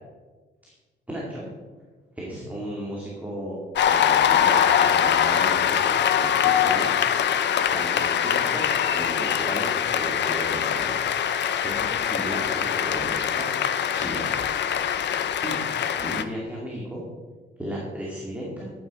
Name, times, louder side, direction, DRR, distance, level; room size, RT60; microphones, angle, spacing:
voice 1, 1.1-1.5 2.1-7.0 7.3-7.4 7.7-11.0 11.6-13.5 13.9-14.4 15.0-15.6 15.9-17.0 17.6-18.7, equal, 5° right, -4 dB, 2.4 m, -35 dB
Cheering / Applause, 3.8-16.2, left 9 dB, 65° left, 0.8 m, -23 dB
13.0 x 9.0 x 4.9 m, 1.4 s
wide cardioid pair, 155°, 19 cm